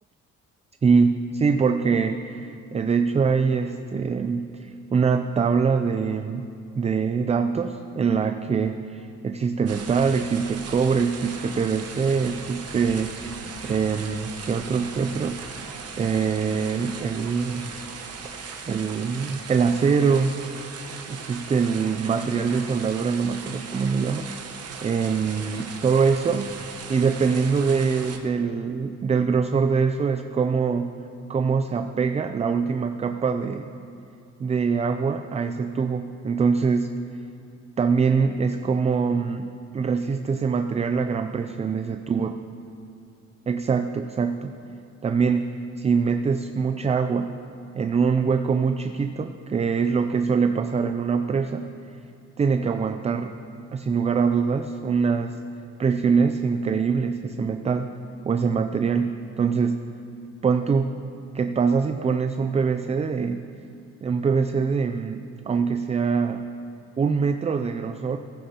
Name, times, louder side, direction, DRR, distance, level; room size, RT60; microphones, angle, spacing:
voice 1, 0.8-6.4 6.8-15.4 16.0-17.7 18.7-20.3 21.1-24.2 24.8-30.9 31.3-33.7 34.4-36.9 37.8-42.3 43.5-44.5 45.0-47.3 47.8-51.6 52.4-53.3 53.7-55.4 55.8-57.9 58.2-59.8 60.4-60.9 61.3-63.4 64.0-66.4 67.0-68.2, right 5 dB, 20° right, 8 dB, 0.4 m, -24 dB
sound 1, 9.7-28.2, right 5 dB, 55° right, 1.1 m, -38 dB
15.0 x 10.5 x 2.9 m, 2.6 s
cardioid pair, 90°, 30 cm